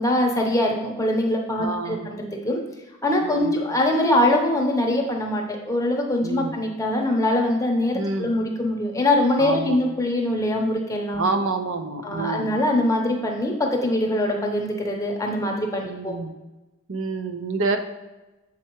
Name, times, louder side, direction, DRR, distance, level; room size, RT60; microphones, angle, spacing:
voice 1, 0.0-2.6 3.0-11.2 12.0-16.2, left 1 dB, 15° left, 0 dB, 0.8 m, -23 dB
voice 2, 1.6-2.1 3.2-3.5 6.2-6.5 7.9-8.3 9.4-9.8 11.2-12.6 15.8-16.3 16.9-17.8, right 3 dB, 65° right, 6 dB, 0.6 m, -27 dB
7.2 x 4.4 x 3.0 m, 1.1 s
head